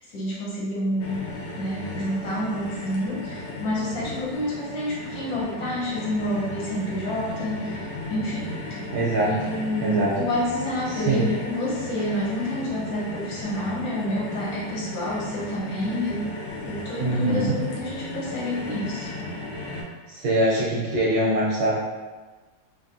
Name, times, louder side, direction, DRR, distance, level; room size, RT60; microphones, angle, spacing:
voice 1, 0.1-1.3 1.6-8.5 9.2-19.1, left 1 dB, 65° left, -6 dB, 1.1 m, -28 dB
sound 1, 1.0-19.8, left 1 dB, 90° left, 0.6 m, -35 dB
voice 2, 8.9-9.5 9.8-10.1 10.9-11.3 17.0-17.6 20.1-21.8, right 1 dB, 70° right, -4 dB, 1.0 m, -23 dB
2.9 x 2.4 x 2.5 m, 1.3 s
omnidirectional pair, 1.9 m